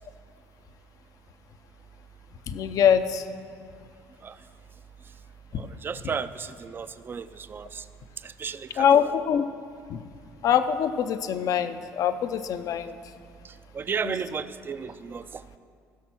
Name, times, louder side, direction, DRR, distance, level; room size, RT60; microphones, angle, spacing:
voice 1, 2.5-3.2 5.5-5.6 8.8-9.4 9.9-10.0 10.4-13.0 14.0-14.1, left 8 dB, 60° left, 10 dB, 0.6 m, -23 dB
voice 2, 5.5-7.9 8.2-9.1 13.4-15.6, right 6 dB, 30° right, 12 dB, 0.4 m, -34 dB
15.0 x 6.1 x 6.1 m, 2.3 s
supercardioid pair, 80°, 7 cm